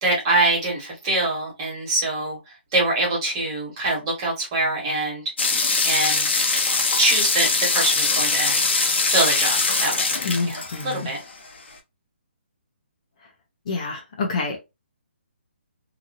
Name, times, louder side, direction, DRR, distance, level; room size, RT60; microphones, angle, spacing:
voice 1, 0.0-2.4 2.7-5.2 5.8-6.3 7.0-8.6 9.1-10.2 10.4-11.2, right 2 dB, 25° right, 1.6 m, -24 dB
sound 1, 5.4-11.2, left 3 dB, 70° left, 1.0 m, -22 dB
voice 2, 10.2-11.1 13.7-14.6, left 4 dB, 35° left, 0.8 m, -27 dB
2.9 x 2.6 x 2.6 m
hypercardioid pair, 170°, 6 cm